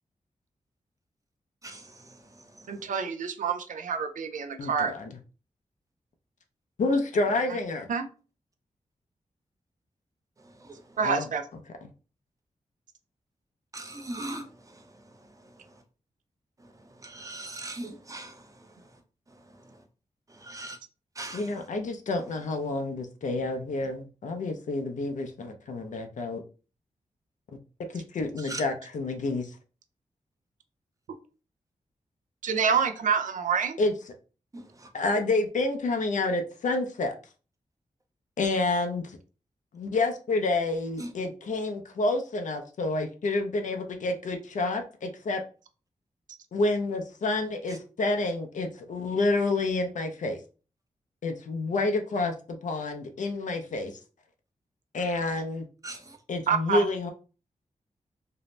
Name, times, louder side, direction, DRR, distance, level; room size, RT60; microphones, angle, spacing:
voice 1, 1.6-2.2 10.6-10.8 13.7-14.8 16.6-16.7 17.0-18.4 20.3-20.8 21.2-21.5 28.5-28.6 34.5-34.9 41.0-41.1 55.8-56.2, right 2 dB, 25° right, 0.6 m, -40 dB
voice 2, 2.7-4.9 7.9-8.1 11.0-11.4 32.4-33.8 56.5-56.8, right 6 dB, 75° right, 0.4 m, -27 dB
voice 3, 4.6-5.1 6.8-7.9 11.0-11.3 11.8-11.9 21.3-26.4 27.9-29.6 33.8-33.9 34.9-37.1 38.4-39.2 39.7-45.4 46.5-50.4 51.2-54.0 54.9-55.6 56.3-57.1, left 2 dB, 70° left, 0.5 m, -29 dB
2.6 x 2.0 x 3.1 m
wide cardioid pair, 85°, 13 cm